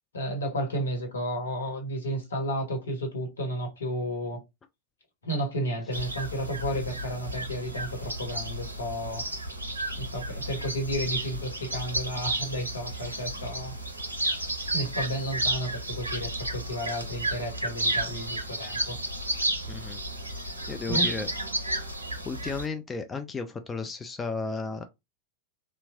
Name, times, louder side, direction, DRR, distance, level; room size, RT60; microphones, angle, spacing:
voice 1, 0.1-4.4 5.2-9.2 10.0-13.7 14.7-19.0 20.9-21.1, equal, 70° left, 1.1 m, -32 dB
sound 1, 5.9-22.7, right 1 dB, 85° right, 0.5 m, -32 dB
voice 2, 19.7-20.0 20.7-21.3 22.3-24.8, left 4 dB, 15° left, 0.3 m, -34 dB
2.7 x 2.2 x 2.8 m
figure-of-eight pair, 90°, 0 cm